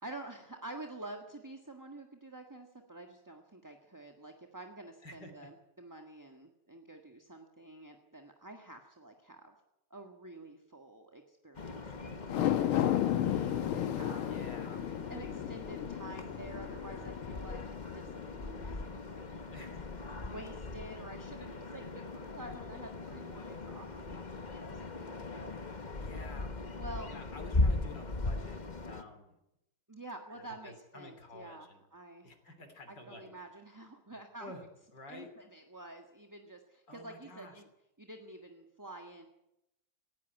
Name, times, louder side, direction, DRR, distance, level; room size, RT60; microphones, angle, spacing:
voice 1, 0.0-9.5 9.9-14.3 15.1-19.7 20.3-25.5 26.7-27.1 29.9-32.3 32.9-34.5 35.1-37.7 38.0-39.3, right 2 dB, 10° right, 3 dB, 1.3 m, -49 dB
voice 2, 5.0-5.5 14.3-14.9 19.5-19.8 26.0-26.5 27.1-29.4 30.3-31.8 32.2-33.3 34.4-34.7 34.9-35.3 36.9-37.6, left 2 dB, 50° left, 7 dB, 3.6 m, -50 dB
sound 1, 11.5-29.0, left 2 dB, 25° left, 1.2 m, -39 dB
sound 2, 12.2-18.7 19.1-19.2, left 11 dB, 75° left, 1.8 m, -34 dB
18.5 x 17.5 x 9.3 m, 0.88 s
omnidirectional pair, 2.4 m